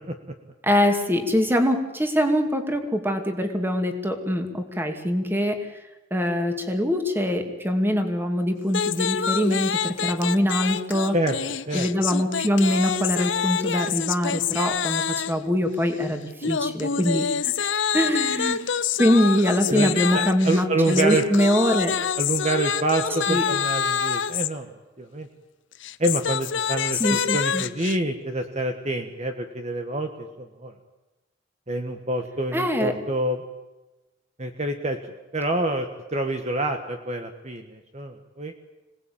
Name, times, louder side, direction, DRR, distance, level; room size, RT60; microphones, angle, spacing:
voice 1, 0.6-5.7 6.1-11.1 11.7-17.7 17.9-18.6 19.0-22.0 23.3-23.4 26.9-27.6 32.5-33.0, equal, 10° right, 5 dB, 2.5 m, -23 dB
sound 1, 8.7-15.5 16.4-24.5 25.7-28.0, left 7 dB, 65° left, 0.8 m, -27 dB
voice 2, 19.7-21.2 21.7-21.8 22.2-24.7 25.0-25.3 26.0-30.7 31.7-33.4 34.4-35.0 35.3-38.5, right 2 dB, 35° right, 5 dB, 1.5 m, -27 dB
26.5 x 19.0 x 8.8 m, 1.1 s
head